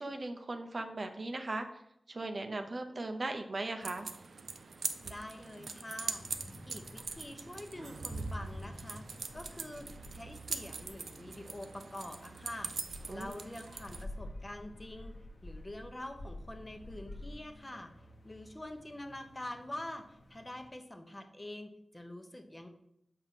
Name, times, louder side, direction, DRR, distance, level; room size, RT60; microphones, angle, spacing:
voice 1, 0.0-1.7 2.1-4.1 13.1-13.4, right 2 dB, 50° right, 6 dB, 0.7 m, -38 dB
sound 1, 3.8-14.0, right 4 dB, 90° right, 0.5 m, -42 dB
voice 2, 5.0-6.3 6.7-9.1 9.3-15.1 15.4-17.9 18.2-22.7, left 1 dB, 25° left, 5 dB, 0.9 m, -46 dB
sound 2, 6.0-20.7, left 1 dB, 60° left, 1.1 m, -50 dB
7.3 x 5.3 x 4.1 m, 0.76 s
wide cardioid pair, 90°, 0 cm